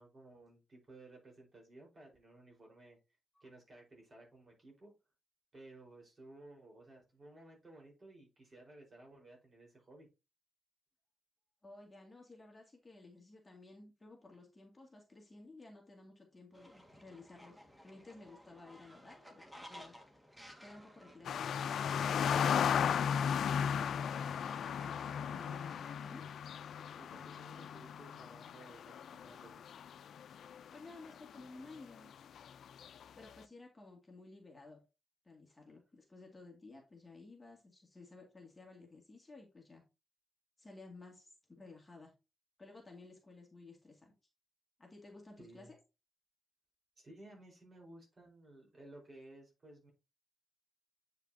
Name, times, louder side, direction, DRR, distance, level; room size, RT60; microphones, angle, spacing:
voice 1, 0.0-3.0 3.4-4.9 5.5-10.1 25.3-25.4 27.0-29.7 45.4-45.7 47.0-49.9, right 2 dB, 35° right, -1 dB, 4.4 m, -57 dB
voice 2, 11.6-19.9 20.6-22.8 23.4-24.1 24.7-26.2 30.7-32.1 33.2-34.8 35.2-39.8 40.6-42.1 42.6-44.1 44.8-45.7, left 3 dB, 20° left, 0 dB, 2.2 m, -55 dB
Fowl, 16.5-26.3, equal, 5° right, 1.7 m, -57 dB
sound 1, 21.2-30.7 31.0-31.4 32.4-33.0, left 8 dB, 90° left, 0.4 m, -35 dB
9.0 x 5.8 x 2.7 m, 0.27 s
wide cardioid pair, 140°, 0 cm